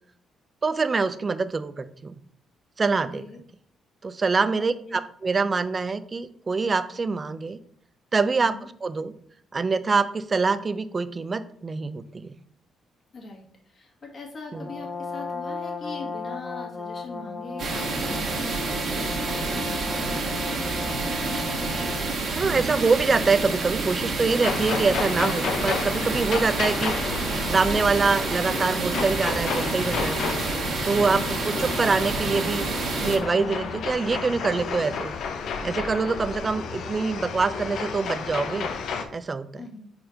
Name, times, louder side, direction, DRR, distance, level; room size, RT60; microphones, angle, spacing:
voice 1, 0.6-2.2 2.8-3.2 4.0-7.6 8.1-8.5 8.8-9.1 9.5-12.3 14.5-14.6 22.3-26.9 27.5-30.2 30.8-32.7 33.0-35.1 35.6-38.7 39.1-39.6, right 4 dB, 35° right, 13 dB, 0.4 m, -25 dB
voice 2, 4.6-5.0 8.4-8.7 13.1-20.3 39.6-39.9, left 3 dB, 45° left, 1 dB, 1.7 m, -41 dB
Brass instrument, 14.5-22.3, left 4 dB, 20° left, 0.9 m, -35 dB
sound 1, 17.6-33.2, right 3 dB, 60° right, 1.5 m, -28 dB
sound 2, 24.4-39.0, left 5 dB, 70° left, 0.7 m, -31 dB
4.3 x 4.3 x 5.1 m, 0.62 s
cardioid pair, 90°, 0 cm